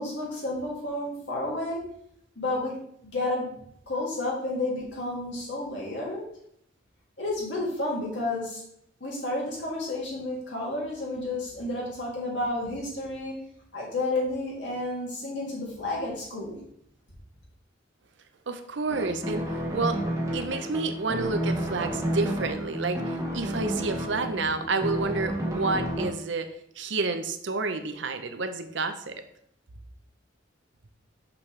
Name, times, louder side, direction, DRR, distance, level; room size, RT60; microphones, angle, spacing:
voice 1, 0.0-1.9 2.4-2.8 3.0-3.5 3.9-6.3 7.2-8.6 9.0-13.4 13.7-16.6, left 2 dB, 65° left, -5 dB, 2.5 m, -31 dB
voice 2, 18.5-20.0 20.3-26.5 26.8-29.2, right 3 dB, 65° right, 8 dB, 0.7 m, -30 dB
sound 1, 18.9-26.1, right 1 dB, 15° right, 1.1 m, -31 dB
6.3 x 6.0 x 3.3 m, 0.69 s
head